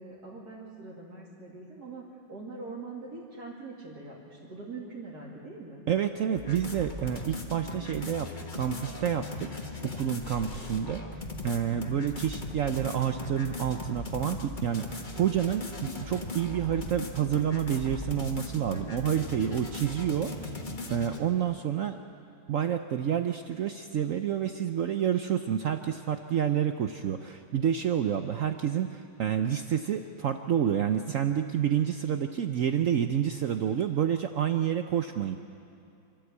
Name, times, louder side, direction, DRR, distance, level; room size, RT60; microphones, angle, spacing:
voice 1, 0.0-5.8, right 3 dB, 50° right, -6 dB, 3.0 m, -43 dB
voice 2, 5.9-9.5 9.8-22.0 22.5-35.4, right 9 dB, 85° right, 7 dB, 0.7 m, -29 dB
sound 1, 6.3-21.2, left 2 dB, 25° left, 1.4 m, -38 dB
28.0 x 13.0 x 8.2 m, 2.7 s
omnidirectional pair, 2.2 m